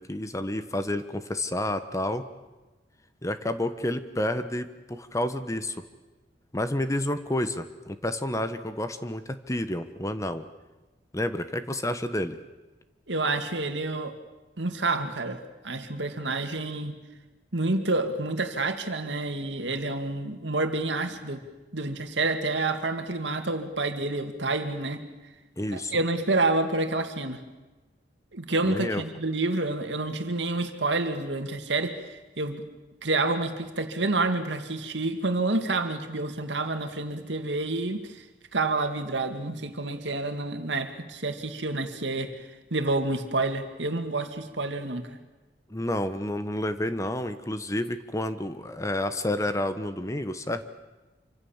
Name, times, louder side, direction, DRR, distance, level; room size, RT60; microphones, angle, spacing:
voice 1, 0.0-2.3 3.2-5.8 6.5-10.4 11.1-12.4 25.6-26.0 28.7-29.0 45.7-50.7, left 1 dB, 15° left, 10 dB, 1.1 m, -30 dB
voice 2, 13.1-14.1 14.6-16.9 17.5-21.4 21.7-25.0 25.7-27.4 28.3-32.6 33.0-38.2 38.5-42.3 42.7-45.2, right 2 dB, 85° right, 7 dB, 2.3 m, -28 dB
27.0 x 25.5 x 7.3 m, 1.2 s
head